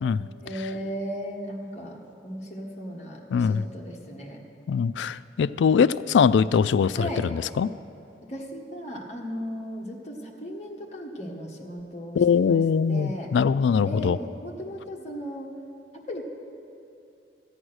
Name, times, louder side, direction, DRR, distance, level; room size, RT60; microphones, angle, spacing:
voice 1, 0.4-2.0 2.2-4.4 6.9-7.3 8.3-12.6 12.9-13.3 13.8-15.5 16.1-16.2, equal, 40° left, -1 dB, 1.5 m, -36 dB
voice 2, 3.3-3.6 4.7-7.7 12.2-14.2, left 6 dB, 75° left, 17 dB, 0.3 m, -22 dB
13.0 x 8.8 x 6.3 m, 2.6 s
head